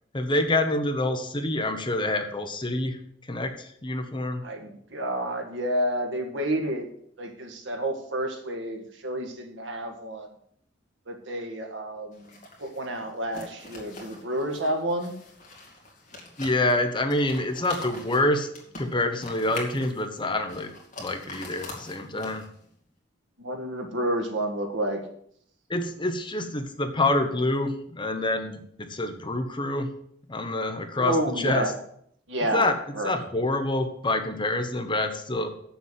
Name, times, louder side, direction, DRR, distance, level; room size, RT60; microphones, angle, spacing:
voice 1, 0.1-3.0 3.3-4.4 16.4-18.5 18.8-20.7 21.0-22.4 25.7-29.9 30.3-31.7 32.5-32.8 33.0-35.5, left 2 dB, 25° left, 6 dB, 1.1 m, -27 dB
voice 2, 4.4-6.9 7.2-10.3 11.1-15.1 23.4-25.0 31.0-31.7 32.3-32.7 33.0-33.1, right 1 dB, 75° right, 4 dB, 1.8 m, -30 dB
sound 1, 12.1-22.6, left 2 dB, 40° left, 2.5 m, -44 dB
7.4 x 7.1 x 7.5 m, 0.67 s
head